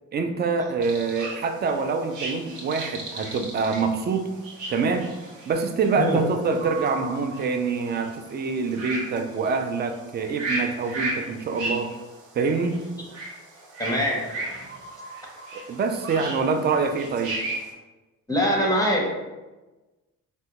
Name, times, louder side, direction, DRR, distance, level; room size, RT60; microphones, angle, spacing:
voice 1, 0.1-4.3 4.7-5.1 5.5-12.0 12.3-12.8 15.5-17.4, right 4 dB, 35° right, 6 dB, 0.4 m, -25 dB
sound 1, 0.8-17.7, right 2 dB, 75° right, 0.7 m, -36 dB
voice 2, 13.8-14.7 18.3-19.1, equal, 10° left, -2 dB, 0.6 m, -23 dB
3.4 x 2.1 x 2.8 m, 1.1 s
cardioid pair, 90°, 30 cm